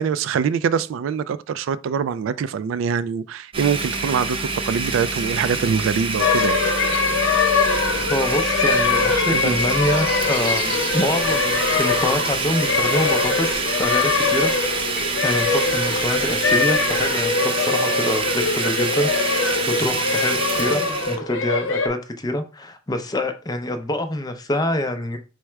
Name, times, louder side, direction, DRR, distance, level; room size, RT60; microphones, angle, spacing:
voice 1, 0.0-6.6 9.3-9.6, right 6 dB, 75° right, 0.3 m, -24 dB
Domestic sounds home sounds, 3.5-21.2, right 3 dB, 25° right, 0.6 m, -26 dB
sound 1, 6.2-21.9, left 4 dB, 75° left, 0.6 m, -23 dB
sound 2, 7.3-17.1, equal, 5° right, 1.0 m, -38 dB
voice 2, 8.1-14.9 15.2-25.2, left 1 dB, 20° left, 0.5 m, -26 dB
4.7 x 2.1 x 4.4 m
head